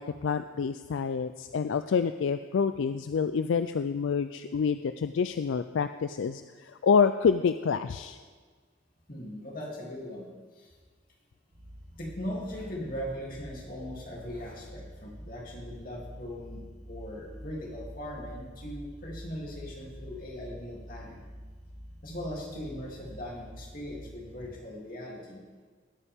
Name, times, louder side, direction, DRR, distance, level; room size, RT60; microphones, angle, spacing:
voice 1, 0.0-8.2, left 6 dB, 75° left, 10 dB, 0.4 m, -27 dB
voice 2, 9.1-10.2 10.5-10.7 12.0-21.2 22.0-25.4, equal, 45° left, -3 dB, 2.8 m, -39 dB
sound 1, 11.5-24.3, equal, 75° right, 2.4 m, -47 dB
18.5 x 8.7 x 3.6 m, 1.5 s
head